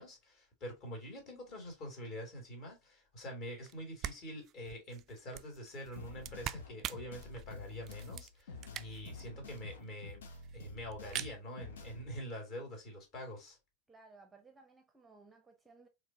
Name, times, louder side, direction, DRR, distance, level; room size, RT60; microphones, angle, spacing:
voice 1, 0.0-10.2 10.5-13.6, equal, 40° left, 2.5 m, -46 dB
sound 1, 3.7-3.8 4.0-9.2 9.6-9.7 9.8-9.9 10.1-10.6 10.9-11.3, right 11 dB, 30° right, 0.3 m, -44 dB
sound 2, 6.0-12.2, left 3 dB, 60° left, 0.9 m, -49 dB
voice 2, 13.9-15.9, right 3 dB, 10° right, 0.8 m, -59 dB
4.7 x 3.4 x 2.8 m
figure-of-eight pair, 90°, 0 cm